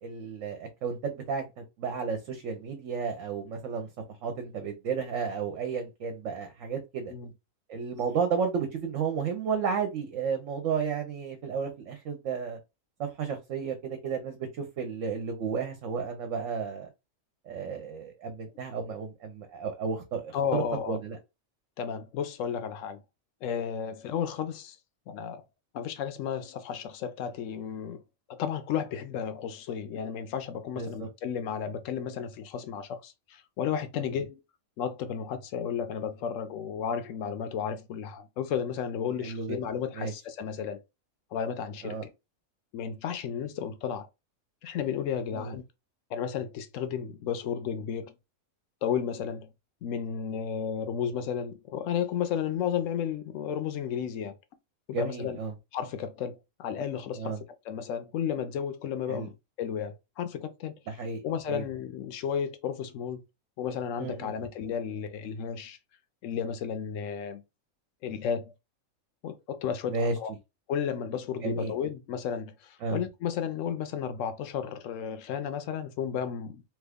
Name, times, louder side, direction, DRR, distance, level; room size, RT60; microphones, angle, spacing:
voice 1, 0.0-3.9 4.2-7.1 7.7-12.6 13.0-16.9 17.5-21.2 30.8-30.9 34.0-34.1 39.2-39.6 40.0-40.1 41.8-42.0 45.3-45.6 54.9-55.5 57.2-57.4 59.1-59.3 60.9-61.2 61.5-61.6 64.0-64.3 69.9-70.1 71.4-71.7 72.8-73.0, right 5 dB, 70° right, 1.0 m, -32 dB
voice 2, 20.3-21.0 21.8-23.0 23.4-24.8 25.1-25.4 25.7-28.0 28.3-34.4 34.8-40.8 41.3-42.1 42.7-44.1 44.6-45.6 46.1-48.1 48.8-49.5 49.8-54.3 54.9-55.4 55.7-57.4 57.6-59.3 59.6-60.7 61.2-63.2 63.6-65.8 66.2-67.4 68.0-68.5 69.2-70.3 70.7-76.6, left 8 dB, 70° left, 0.9 m, -33 dB
3.0 x 2.3 x 3.4 m
omnidirectional pair, 1.5 m